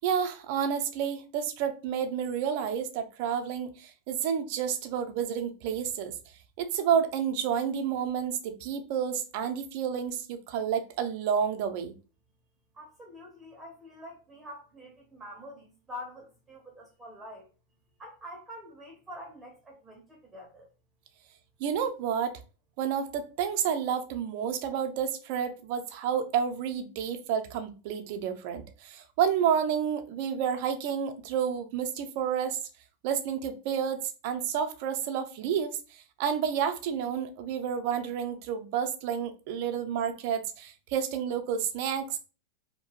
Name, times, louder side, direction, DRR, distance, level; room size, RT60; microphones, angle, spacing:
voice 1, 0.0-6.1 6.6-11.9 21.6-22.4 22.8-32.6 33.0-42.2, right 8 dB, 60° right, 0.5 m, -30 dB
voice 2, 12.7-17.5 18.0-20.7, left 1 dB, 15° right, 0.8 m, -46 dB
2.8 x 2.2 x 3.0 m
hypercardioid pair, 110°, 0 cm